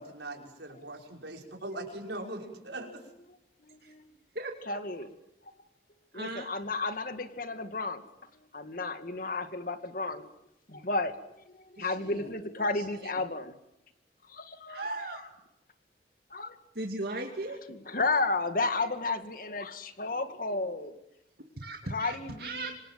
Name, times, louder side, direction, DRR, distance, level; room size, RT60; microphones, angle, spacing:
voice 1, 0.0-3.0, right 1 dB, 85° right, 1 dB, 5.9 m, -40 dB
voice 2, 3.7-4.1 4.7-5.1 6.1-8.0 8.5-10.3 10.7-11.1 11.5-13.5 14.3-15.0 16.3-16.6 17.7-20.9 21.9-22.7, left 3 dB, 50° left, 9 dB, 2.2 m, -33 dB
voice 3, 4.3-4.8 6.1-6.5 11.8-12.3 12.7-12.9 14.7-15.2 16.7-17.6 21.6-22.8, right 2 dB, 60° right, 2 dB, 2.6 m, -38 dB
27.5 x 25.5 x 7.7 m, 0.84 s
head